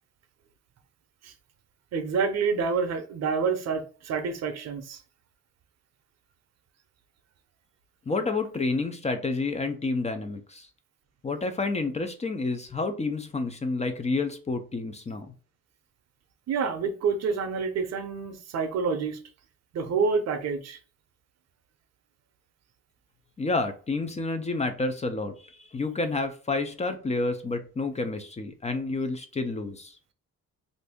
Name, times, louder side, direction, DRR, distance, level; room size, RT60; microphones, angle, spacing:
voice 1, 1.9-5.0 16.5-19.2 19.7-20.8, right 5 dB, 60° right, 0.6 m, -28 dB
voice 2, 8.1-10.7 11.2-15.3 23.4-29.9, left 3 dB, 20° left, 0.5 m, -29 dB
2.6 x 2.5 x 3.5 m
cardioid pair, 90°, 30 cm